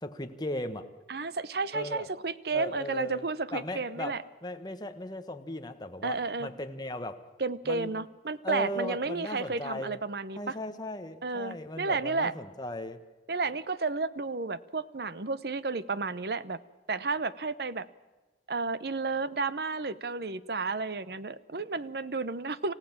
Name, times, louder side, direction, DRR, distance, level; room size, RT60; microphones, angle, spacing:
voice 1, 0.0-0.9 1.7-2.1 2.5-3.3 3.5-7.2 7.6-7.9 8.4-10.0 10.4-13.0, left 1 dB, 25° left, 7 dB, 1.3 m, -37 dB
voice 2, 1.1-4.2 6.0-6.5 7.4-10.6 11.2-12.3 13.3-16.6 16.9-17.9 18.5-22.7, right 3 dB, 60° right, 16 dB, 0.8 m, -32 dB
28.0 x 16.0 x 7.4 m, 1.2 s
head